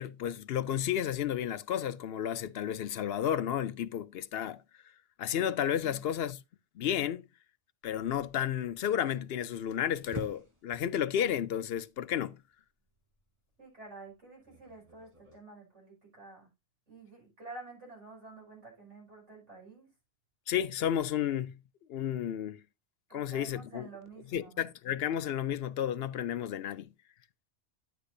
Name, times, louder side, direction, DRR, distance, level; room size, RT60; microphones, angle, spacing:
voice 1, 0.0-4.6 5.2-6.4 6.8-7.2 7.8-12.4 20.5-21.5 21.9-22.6 23.1-23.9 24.3-26.9, left 10 dB, 65° left, 0.8 m, -32 dB
sound 1, 7.8-15.4, equal, 25° right, 4.1 m, -50 dB
voice 2, 13.6-16.5 16.9-19.9 23.1-24.7, right 3 dB, 80° right, 5.9 m, -50 dB
11.0 x 8.4 x 2.6 m
omnidirectional pair, 1.2 m